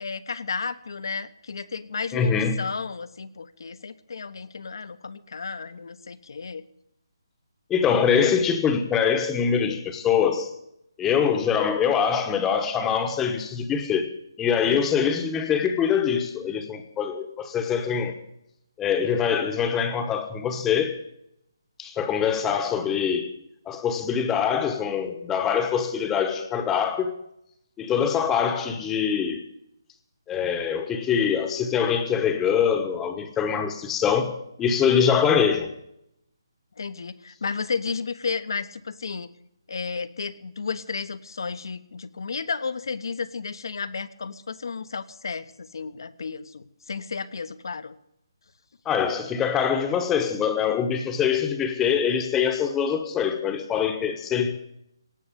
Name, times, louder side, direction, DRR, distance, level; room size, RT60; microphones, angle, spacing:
voice 1, 0.0-6.6 14.7-14.9 36.8-39.3 39.7-48.0, left 5 dB, 65° left, 1.1 m, -33 dB
voice 2, 2.1-2.6 7.7-10.5 11.0-14.1 14.4-18.1 18.8-21.0 21.8-23.3 23.7-27.1 27.8-29.4 30.3-35.7 48.8-54.5, left 7 dB, 10° left, 1.1 m, -24 dB
18.0 x 6.6 x 9.8 m
hypercardioid pair, 170°, 2 cm